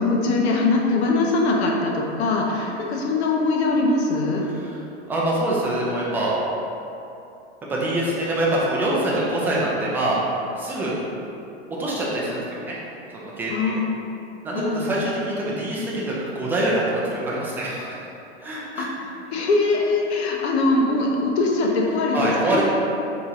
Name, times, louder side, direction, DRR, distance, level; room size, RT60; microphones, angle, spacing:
voice 1, 0.0-4.5 13.5-14.1 14.5-14.9 18.8-22.6, left 3 dB, 70° left, -1 dB, 0.8 m, -22 dB
voice 2, 5.1-6.3 7.7-10.2 10.6-10.9 11.8-12.8 13.1-13.8 14.4-17.9 18.4-18.9 19.4-19.5 22.1-22.6, right 1 dB, 5° right, -6 dB, 0.3 m, -25 dB
3.6 x 2.9 x 4.1 m, 2.8 s
supercardioid pair, 145°, 33 cm